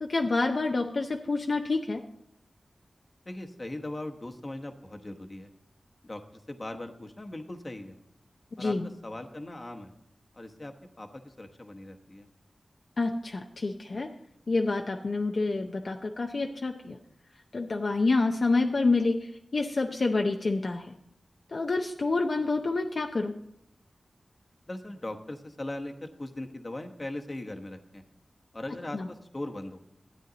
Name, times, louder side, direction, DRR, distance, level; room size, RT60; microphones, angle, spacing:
voice 1, 0.0-2.0 8.6-8.9 13.0-14.1 14.5-17.0 17.5-20.9 21.5-23.3 28.9-29.1, left 3 dB, 60° left, 3 dB, 0.6 m, -28 dB
voice 2, 3.2-5.5 6.0-6.2 6.5-8.0 8.6-8.8 9.0-9.9 10.3-12.3 24.7-28.0 28.5-29.8, left 1 dB, 35° left, 4 dB, 1.1 m, -39 dB
12.5 x 8.8 x 3.9 m, 0.79 s
wide cardioid pair, 65°, 0 cm